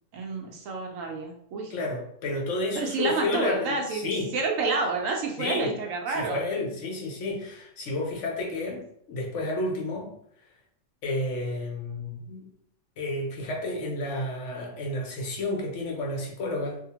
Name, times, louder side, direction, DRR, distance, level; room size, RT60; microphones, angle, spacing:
voice 1, 0.1-1.7 2.8-6.4, right 3 dB, 75° right, 1 dB, 1.0 m, -29 dB
voice 2, 1.7-4.3 5.4-5.7 6.1-10.1 11.0-12.5 13.0-16.8, left 2 dB, 65° left, -1 dB, 1.0 m, -31 dB
2.7 x 2.1 x 2.8 m, 0.71 s
omnidirectional pair, 1.4 m